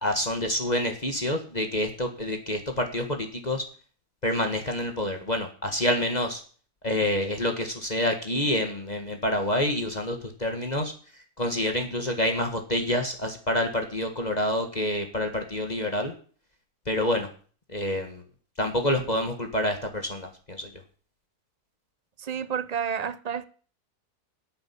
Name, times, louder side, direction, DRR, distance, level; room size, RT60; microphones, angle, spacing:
voice 1, 0.0-3.6 4.2-6.4 6.8-10.9 11.4-16.1 16.9-17.3 17.7-18.2 18.6-20.7, left 1 dB, 25° left, 1.7 m, -27 dB
voice 2, 22.2-23.5, right 7 dB, 45° right, 0.5 m, -30 dB
10.5 x 8.6 x 8.4 m
omnidirectional pair, 1.7 m